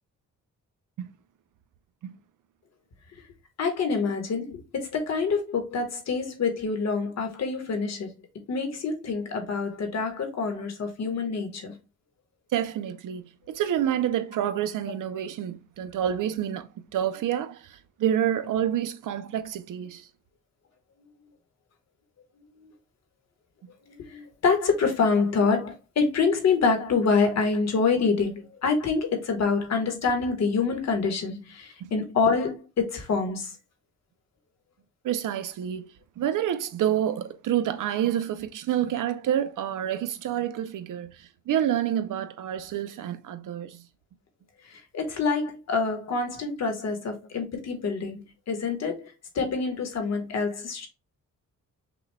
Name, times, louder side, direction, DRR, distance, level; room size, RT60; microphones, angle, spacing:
voice 1, 3.6-8.1 8.5-11.7 22.6-22.7 23.8-33.5 44.6-50.9, left 4 dB, 60° left, 1.3 m, -26 dB
voice 2, 12.5-20.1 31.8-31.9 35.0-35.9 36.2-43.8, right 10 dB, 85° right, 0.7 m, -28 dB
5.9 x 2.4 x 3.3 m
wide cardioid pair, 160°, 31 cm